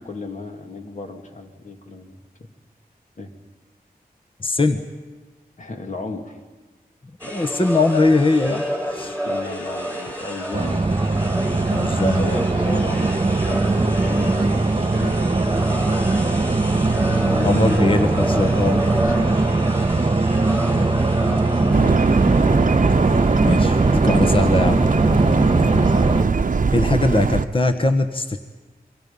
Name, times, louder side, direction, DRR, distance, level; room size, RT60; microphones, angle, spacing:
voice 1, 0.0-2.2 3.2-3.3 5.6-6.4 9.1-10.9 12.0-15.2 16.3-17.8 18.9-19.6 21.2-22.1, left 2 dB, 50° left, 4 dB, 2.4 m, -35 dB
voice 2, 4.4-4.8 7.2-9.2 11.7-12.2 17.4-18.8 23.4-24.8 26.7-28.4, left 2 dB, 35° left, 7 dB, 1.2 m, -20 dB
sound 1, 7.2-22.9, equal, 10° left, 5.7 m, -30 dB
sound 2, 10.5-26.2, right 3 dB, 30° right, 1.4 m, -20 dB
sound 3, 21.7-27.5, right 4 dB, 55° right, 0.8 m, -20 dB
29.5 x 24.0 x 5.5 m, 1.3 s
cardioid pair, 55°, 16 cm